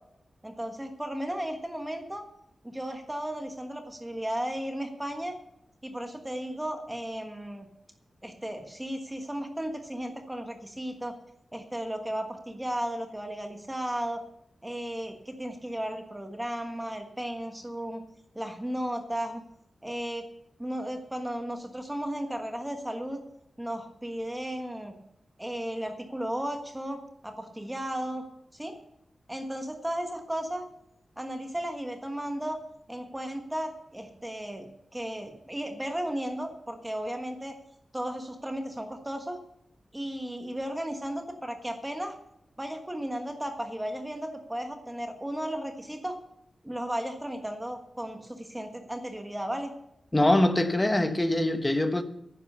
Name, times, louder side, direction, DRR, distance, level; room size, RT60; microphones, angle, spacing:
voice 1, 0.4-2.2 2.6-5.4 5.8-7.7 8.2-11.2 11.5-14.2 14.6-18.0 18.3-19.4 19.8-20.2 20.6-23.2 23.6-24.9 25.4-28.2 28.5-28.8 29.3-30.6 31.2-32.6 32.9-37.6 37.9-39.4 39.9-42.2 42.6-46.2 46.6-49.7, right 1 dB, 10° right, 1.4 m, -35 dB
voice 2, 50.1-52.0, left 1 dB, 15° left, 1.1 m, -23 dB
11.0 x 10.0 x 6.9 m
wide cardioid pair, 130°, 0 cm